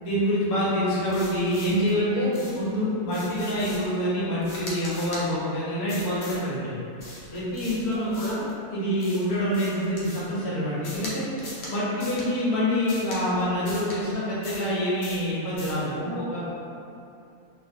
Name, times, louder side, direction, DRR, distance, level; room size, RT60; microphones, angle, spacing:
voice 1, 0.0-6.7 7.3-8.4 8.7-11.2 11.7-16.5, equal, 90° left, -8 dB, 1.3 m, -26 dB
sound 1, 1.1-1.9 2.3-2.7 3.1-4.0 4.4-5.2 5.9-6.4 7.0-8.5 9.0-10.3 10.8-11.1 11.4-11.7 12.0-12.3 12.9-13.2 13.6-14.0 14.4-14.7 15.0-15.2 15.6-15.8, left 1 dB, 70° left, 1.1 m, -41 dB
voice 2, 7.9-8.5 16.0-16.6, right 1 dB, 50° right, -11 dB, 0.7 m, -35 dB
2.6 x 2.5 x 2.5 m, 2.6 s
omnidirectional pair, 1.6 m